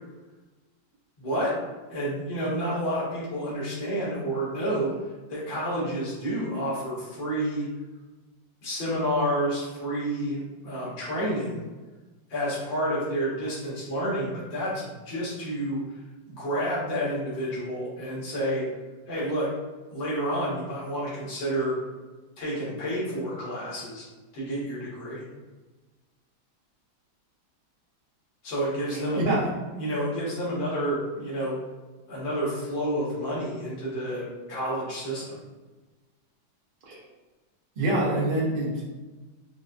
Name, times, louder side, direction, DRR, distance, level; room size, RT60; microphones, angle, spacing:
voice 1, 1.2-1.5 1.9-4.9 5.3-7.7 8.6-11.6 12.3-15.8 16.3-18.7 19.1-19.5 19.9-21.8 22.4-24.0 24.3-25.2 28.4-29.3 29.7-31.6 32.1-35.4, equal, 75° left, -7 dB, 2.2 m, -29 dB
voice 2, 37.8-38.9, right 1 dB, 90° right, -5 dB, 0.4 m, -25 dB
5.2 x 2.1 x 2.5 m, 1.2 s
omnidirectional pair, 2.2 m